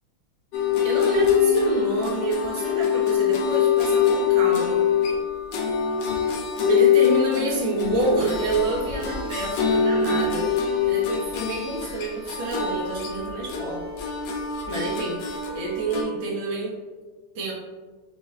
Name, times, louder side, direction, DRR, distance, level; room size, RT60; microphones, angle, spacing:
sound 1, 0.5-16.0, left 7 dB, 70° left, 1.2 m, -24 dB
voice 1, 0.8-4.8 6.6-10.5 10.8-13.8 14.7-15.2 15.5-16.8 17.4-17.5, right 2 dB, 85° right, -3 dB, 1.8 m, -28 dB
5.5 x 2.5 x 3.1 m, 1.3 s
omnidirectional pair, 2.1 m